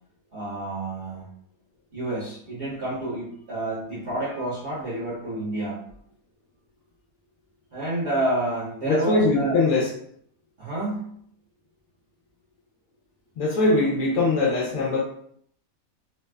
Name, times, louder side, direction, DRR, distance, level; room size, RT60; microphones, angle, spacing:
voice 1, 0.3-1.2 1.9-5.8 7.7-9.6 10.6-11.1, right 1 dB, 55° right, -8 dB, 1.2 m, -29 dB
voice 2, 8.8-9.9 13.4-15.0, left 3 dB, 70° left, -3 dB, 1.0 m, -21 dB
3.2 x 2.0 x 2.3 m, 0.65 s
omnidirectional pair, 1.5 m